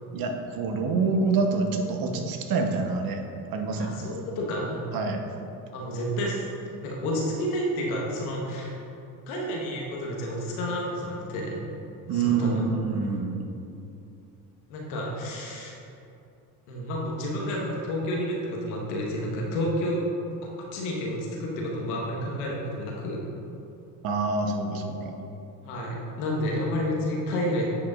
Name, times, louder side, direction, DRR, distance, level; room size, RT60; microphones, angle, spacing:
voice 1, 0.1-3.2 3.5-3.9 4.9-5.2 12.1-13.4 24.0-25.1, right 4 dB, 55° right, 4 dB, 0.9 m, -26 dB
voice 2, 3.7-4.9 5.7-6.5 6.8-8.8 9.3-11.6 12.1-12.7 14.7-15.8 16.7-20.0 20.7-23.2 25.6-27.7, equal, 85° left, -2 dB, 1.3 m, -30 dB
10.0 x 5.1 x 2.4 m, 2.7 s
supercardioid pair, 75°, 43 cm